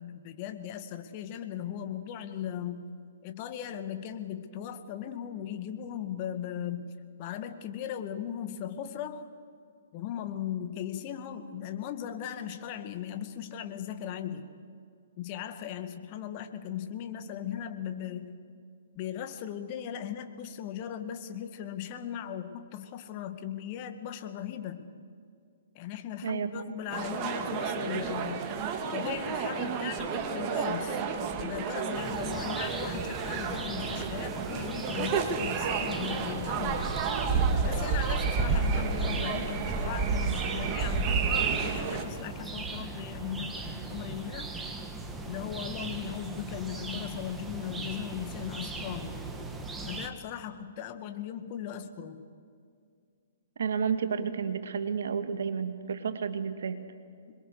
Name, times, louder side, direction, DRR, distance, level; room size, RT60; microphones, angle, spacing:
voice 1, 0.0-2.9 3.2-6.9 7.2-9.3 9.9-14.5 15.2-18.4 18.9-24.9 25.8-28.5 28.9-31.0 31.4-36.8 37.6-44.5 45.3-49.1 49.8-52.3, left 9 dB, 40° left, 8 dB, 1.9 m, -38 dB
voice 2, 26.2-26.6 53.6-56.8, right 6 dB, 65° right, 9 dB, 1.9 m, -31 dB
sound 1, 26.9-42.0, right 5 dB, 30° right, 2.3 m, -30 dB
sound 2, 31.9-50.1, right 3 dB, 10° right, 2.1 m, -39 dB
26.5 x 22.0 x 6.8 m, 2.3 s
figure-of-eight pair, 125°, 0 cm